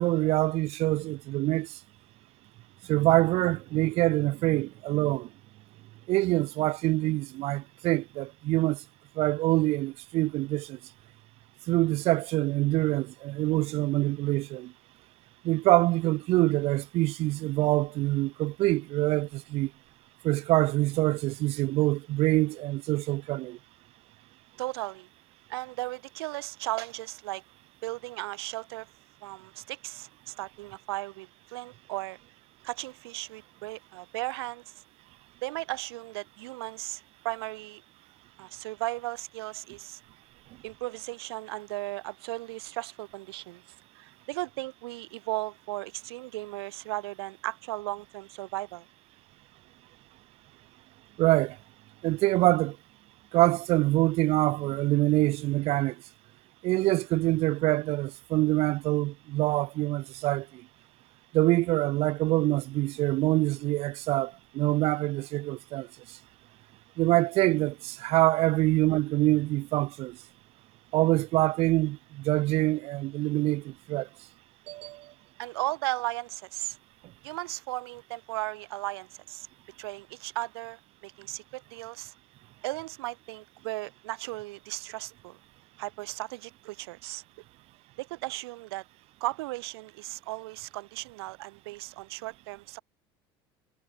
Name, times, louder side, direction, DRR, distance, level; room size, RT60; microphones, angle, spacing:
voice 1, 0.0-1.7 2.9-5.3 6.1-8.8 9.2-10.8 11.7-14.7 15.4-19.7 20.2-23.6 51.2-51.6 52.0-52.8 53.3-56.0 56.6-60.5 61.3-65.9 67.0-70.2 70.9-74.1 74.7-75.1, right 19 dB, 55° right, 0.5 m, -25 dB
voice 2, 24.6-25.1 25.5-27.4 27.8-28.9 29.2-32.2 32.6-34.7 35.4-37.8 38.4-40.0 40.6-43.6 44.0-48.9 75.4-76.8 77.2-79.5 79.8-82.1 82.6-85.4 85.8-87.2 88.0-88.8 89.2-92.8, right 20 dB, 85° right, 1.5 m, -36 dB
supercardioid pair, 110°, 13 cm